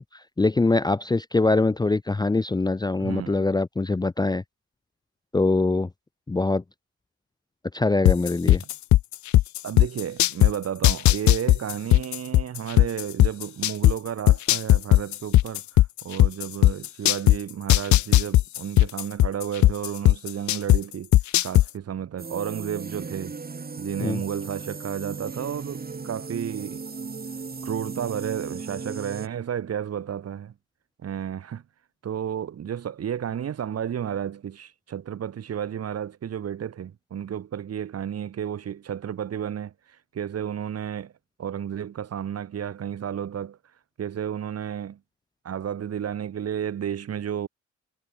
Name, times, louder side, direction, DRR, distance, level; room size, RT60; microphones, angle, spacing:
voice 1, 0.0-4.4 5.3-5.9 6.3-6.6 7.7-8.6 24.0-24.2, left 3 dB, 15° left, 0.7 m, -23 dB
voice 2, 3.0-3.4 9.6-21.1 21.4-23.4 23.8-26.8 27.6-30.5 31.0-31.6 32.0-39.7 40.1-41.1 41.4-43.6 44.0-45.0 45.4-47.5, right 9 dB, 55° right, 2.1 m, -32 dB
sound 1, 8.1-10.5 10.8-13.9 14.3-17.4 17.7-20.8 21.1-21.7, left 15 dB, 70° left, 0.8 m, -16 dB
sound 2, 22.2-29.3, right 4 dB, 30° right, 7.1 m, -36 dB
cardioid pair, 90°, 30 cm